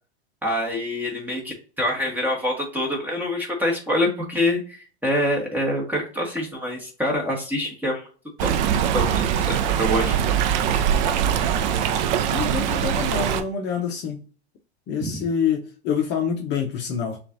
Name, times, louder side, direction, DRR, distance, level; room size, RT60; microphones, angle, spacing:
voice 1, 0.4-8.1 8.4-8.5 8.9-10.1 15.0-15.2, left 1 dB, 5° right, 1.4 m, -25 dB
Stream, 8.4-13.4, right 9 dB, 45° right, 0.6 m, -22 dB
voice 2, 12.3-14.2 14.9-17.2, left 7 dB, 35° left, 0.8 m, -26 dB
6.7 x 2.5 x 2.6 m
hypercardioid pair, 105°, 33 cm